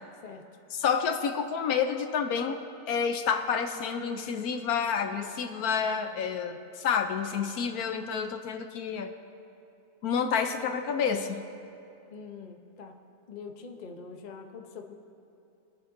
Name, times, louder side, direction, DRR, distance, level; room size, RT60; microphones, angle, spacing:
voice 1, 0.7-2.6 2.9-9.1 10.0-11.4, left 6 dB, 75° left, 7 dB, 1.1 m, -29 dB
voice 2, 12.1-13.0 13.3-14.9, left 5 dB, 40° left, 4 dB, 0.7 m, -44 dB
23.5 x 9.4 x 2.6 m, 2.8 s
omnidirectional pair, 1.7 m